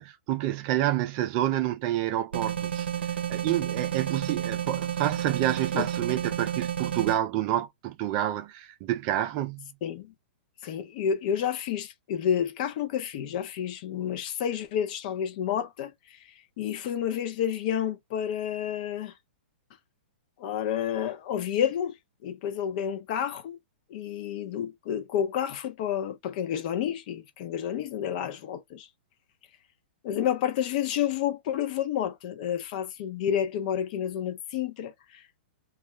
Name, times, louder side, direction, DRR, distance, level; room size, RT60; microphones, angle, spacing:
voice 1, 0.0-9.7, right 13 dB, 40° right, 0.4 m, -29 dB
sound 1, 2.3-7.2, right 9 dB, 85° right, 0.7 m, -31 dB
voice 2, 9.8-10.1 10.6-19.1 20.4-23.6 23.9-28.9 30.0-35.4, left 9 dB, 50° left, 0.7 m, -30 dB
2.4 x 2.0 x 3.1 m
hypercardioid pair, 140°, 6 cm